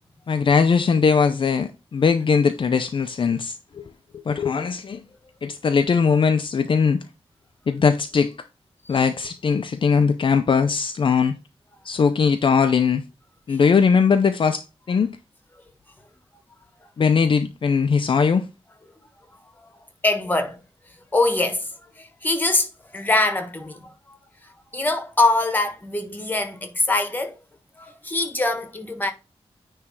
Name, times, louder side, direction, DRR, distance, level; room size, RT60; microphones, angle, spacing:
voice 1, 0.3-3.8 4.3-5.0 5.4-7.0 7.7-8.3 8.9-11.3 11.8-13.0 13.5-15.1 17.0-18.5, left 5 dB, 50° left, 0.6 m, -20 dB
voice 2, 20.0-20.6 21.1-21.7 22.0-24.2 24.4-27.4 27.8-29.1, left 2 dB, 15° left, 1.4 m, -23 dB
9.7 x 3.3 x 4.7 m
wide cardioid pair, 170°, 11 cm